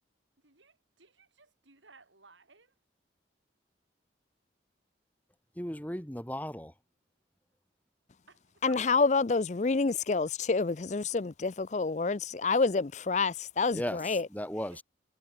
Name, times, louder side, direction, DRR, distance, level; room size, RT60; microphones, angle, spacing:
voice 1, 0.4-2.7 8.3-8.9 9.1-9.5 10.0-10.1 13.6-13.9 14.7-14.8, right 3 dB, 80° right, 6.9 m, -56 dB
voice 2, 5.6-6.7 13.7-14.8, equal, 10° left, 2.9 m, -36 dB
voice 3, 8.6-14.3, left 4 dB, 40° left, 0.5 m, -28 dB
head